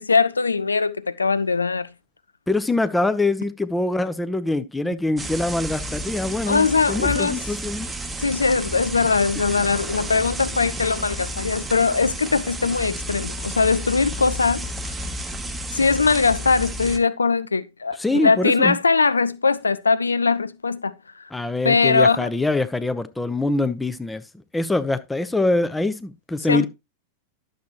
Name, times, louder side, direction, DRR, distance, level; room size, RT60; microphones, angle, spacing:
voice 1, 0.0-1.9 6.5-7.4 8.2-14.7 15.7-20.9 21.6-22.3 26.5-26.7, left 4 dB, 75° left, 0.5 m, -21 dB
voice 2, 2.5-7.9 17.9-18.8 21.3-24.2 24.5-26.7, left 2 dB, 5° left, 0.8 m, -24 dB
sound 1, 5.2-17.0, right 1 dB, 10° right, 1.2 m, -31 dB
11.5 x 7.3 x 2.9 m
figure-of-eight pair, 90°, 0 cm